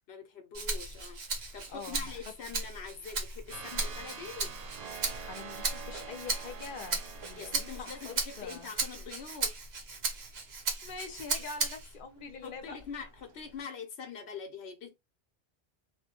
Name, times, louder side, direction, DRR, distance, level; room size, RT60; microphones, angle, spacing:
voice 1, 0.1-4.5 7.3-9.6 12.4-14.9, left 6 dB, 85° left, 1.0 m, -44 dB
Rattle (instrument), 0.5-12.0 12.4-13.6, right 3 dB, 80° right, 1.1 m, -36 dB
voice 2, 1.7-2.3 5.2-8.7 10.8-12.8, left 5 dB, 55° left, 0.9 m, -44 dB
sound 1, 3.5-9.0, right 6 dB, 50° right, 0.5 m, -46 dB
3.1 x 2.2 x 2.9 m
omnidirectional pair, 1.1 m